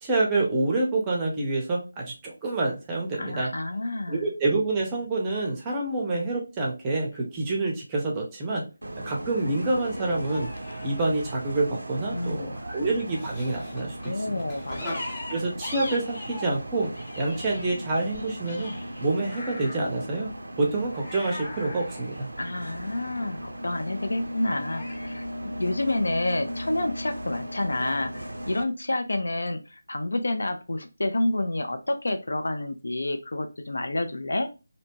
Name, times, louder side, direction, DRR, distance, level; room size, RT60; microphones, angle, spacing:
voice 1, 0.0-3.5 4.1-8.6 9.0-10.5 10.8-14.4 15.3-16.9 17.2-18.7 19.0-20.3 20.6-22.3, right 2 dB, 15° right, -2 dB, 0.6 m, -27 dB
voice 2, 3.2-4.3 12.1-12.6 14.1-15.1 22.4-34.5, left 2 dB, 65° left, 7 dB, 0.4 m, -29 dB
sound 1, 7.1-7.2 9.4-11.6 12.5-13.9 14.7-16.6 16.9-19.9 20.9-23.2 24.7-25.1, left 2 dB, 40° left, 0.9 m, -42 dB
Bus, 8.8-28.6, right 1 dB, 70° right, 0.4 m, -37 dB
sound 2, 13.1-18.2, left 2 dB, 20° left, 0.7 m, -44 dB
2.7 x 2.1 x 2.8 m, 0.30 s
figure-of-eight pair, 160°, 0 cm